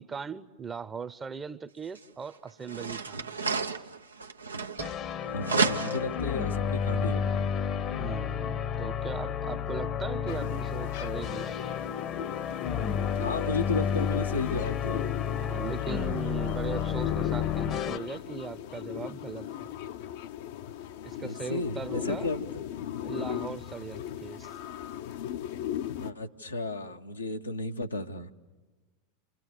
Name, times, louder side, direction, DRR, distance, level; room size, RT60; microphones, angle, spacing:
voice 1, 0.0-3.3 8.0-11.6 15.3-19.5 21.0-22.3 23.0-24.5, right 6 dB, 20° right, 15 dB, 0.8 m, -39 dB
sound 1, 1.9-2.0 2.6-5.1 5.4-6.2, right 5 dB, 85° right, 0.7 m, -31 dB
sound 2, 4.8-18.0, left 8 dB, 35° left, 0.9 m, -31 dB
voice 2, 5.3-7.3 13.2-15.1 21.2-22.6 26.0-28.3, left 2 dB, 85° left, 4 dB, 1.1 m, -33 dB
sound 3, 10.3-26.1, left 11 dB, 60° left, 0.7 m, -38 dB
29.0 x 25.5 x 6.6 m, 1.2 s
figure-of-eight pair, 85°, 0 cm